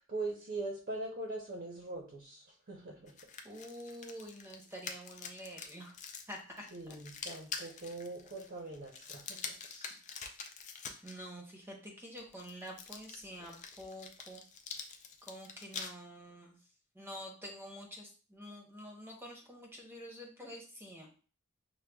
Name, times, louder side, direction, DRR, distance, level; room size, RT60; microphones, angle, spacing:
voice 1, 0.0-3.2 6.7-9.6, right 2 dB, 40° right, 0 dB, 0.7 m, -42 dB
sound 1, 3.1-11.1 12.2-15.9, left 5 dB, 35° left, 0.4 m, -46 dB
voice 2, 3.4-5.9 6.3-7.0 9.6-9.9 11.0-14.4 15.3-16.6 16.9-21.2, equal, 10° right, 0 dB, 0.8 m, -48 dB
6.2 x 2.2 x 2.2 m, 0.38 s
head